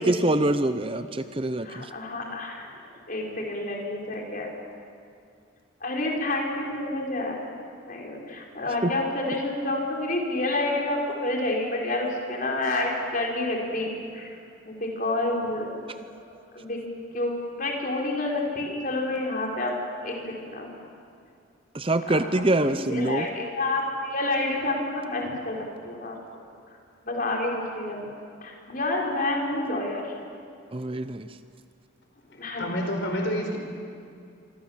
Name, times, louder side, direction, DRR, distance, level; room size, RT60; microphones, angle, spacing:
voice 1, 0.0-1.9 8.8-8.9 21.7-23.3 30.7-31.3, right 1 dB, 25° right, 11 dB, 0.7 m, -25 dB
voice 2, 1.6-2.7 3.1-4.5 5.8-7.5 7.9-14.3 14.6-15.8 16.5-16.8 17.1-19.7 20.0-20.7 22.1-22.2 22.6-26.2 27.0-28.0 28.4-30.0 32.3-32.7, left 2 dB, 40° left, -1 dB, 5.0 m, -29 dB
voice 3, 32.5-33.6, equal, 60° left, 3 dB, 4.8 m, -28 dB
26.5 x 25.0 x 7.5 m, 2.4 s
head